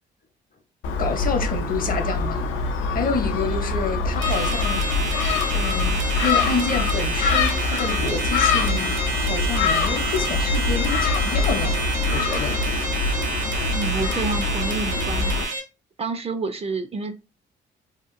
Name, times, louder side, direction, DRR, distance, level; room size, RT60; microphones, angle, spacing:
Gull seagull, 0.8-15.4, left 3 dB, 85° left, 0.5 m, -24 dB
voice 1, 1.0-2.5 2.9-4.8 5.5-5.9 6.2-12.7, left 4 dB, 45° left, 0.7 m, -28 dB
sound 1, 4.2-15.6, right 3 dB, 70° right, 0.8 m, -29 dB
voice 2, 13.7-15.5 16.0-17.1, right 4 dB, 30° right, 0.3 m, -29 dB
2.8 x 2.4 x 2.5 m
cardioid pair, 90°, 20 cm